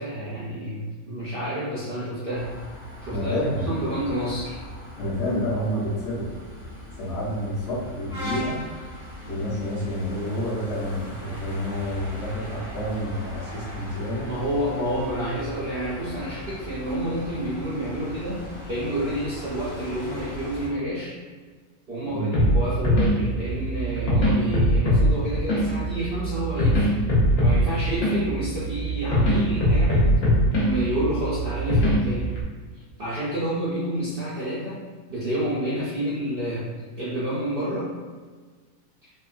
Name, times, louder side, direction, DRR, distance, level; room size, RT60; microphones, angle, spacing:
voice 1, 0.0-2.5 3.0-4.6 14.2-21.2 21.9-26.9 27.4-30.2 30.6-32.4 32.7-38.0, right 1 dB, 90° right, -9 dB, 0.4 m, -29 dB
sound 1, 2.3-20.7, equal, 35° left, 0.5 m, -39 dB
voice 2, 3.1-3.8 5.0-6.3 7.0-8.6 9.3-14.3 22.1-22.4, equal, 55° left, -7 dB, 0.9 m, -29 dB
sound 2, 22.3-32.4, equal, 70° left, 1.2 m, -22 dB
2.9 x 2.1 x 2.4 m, 1.5 s
omnidirectional pair, 1.6 m